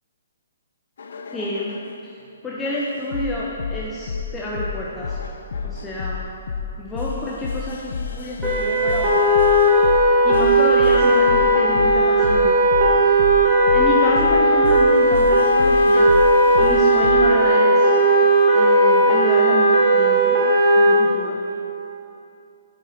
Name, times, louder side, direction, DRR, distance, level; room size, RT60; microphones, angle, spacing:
sound 1, 1.0-2.0 2.6-17.3 18.0-18.4, left 5 dB, 70° left, 0.4 m, -31 dB
voice 1, 1.3-1.8 2.0-5.2 5.6-6.2 6.8-9.2 10.2-12.5 13.7-16.1 16.6-18.0 18.5-20.4 20.7-21.4, left 1 dB, 10° left, -6 dB, 0.5 m, -28 dB
sound 2, 8.4-20.9, right 1 dB, 10° right, 1.1 m, -16 dB
6.0 x 4.1 x 3.9 m, 2.6 s
hypercardioid pair, 155°, 0 cm